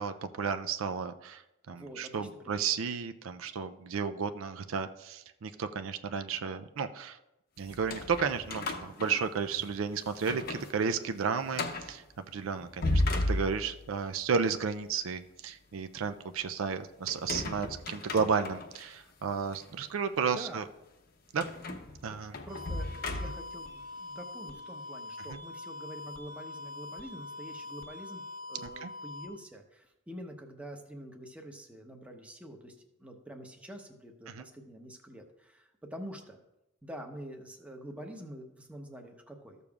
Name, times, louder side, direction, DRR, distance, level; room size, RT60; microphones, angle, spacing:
voice 1, 0.0-1.4 1.7-7.2 7.6-12.0 12.3-20.6 21.3-21.4 22.0-22.4 25.3-25.4 28.8-28.9 34.3-34.4, right 6 dB, 65° right, 8 dB, 0.4 m, -33 dB
voice 2, 1.7-2.6 20.3-20.6 22.0-22.2 22.4-28.2 28.5-36.4 36.8-39.6, equal, 5° right, 3 dB, 0.9 m, -46 dB
sound 1, 7.7-9.7 10.1-10.7 11.0-11.1 11.5-11.9 12.6-13.9 17.1-18.8 19.5-19.6 21.4-23.6, left 2 dB, 45° left, 0.8 m, -34 dB
sound 2, 22.5-29.3, left 2 dB, 20° right, 1.5 m, -44 dB
14.0 x 6.8 x 2.4 m, 0.92 s
head